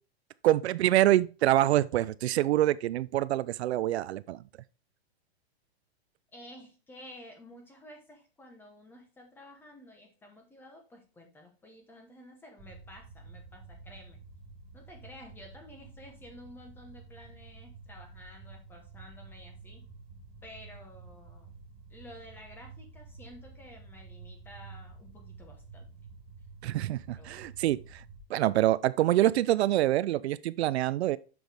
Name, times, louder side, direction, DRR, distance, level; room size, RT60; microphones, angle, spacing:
voice 1, 0.4-4.4 26.6-28.0 28.3-31.2, right 14 dB, 75° right, 0.5 m, -26 dB
voice 2, 6.3-14.2 14.7-19.8 20.4-21.5 21.9-25.9 27.1-27.5, left 1 dB, 5° left, 0.9 m, -52 dB
sound 1, 12.6-28.2, right 4 dB, 20° right, 1.1 m, -50 dB
7.1 x 6.1 x 3.3 m
supercardioid pair, 165°, 32 cm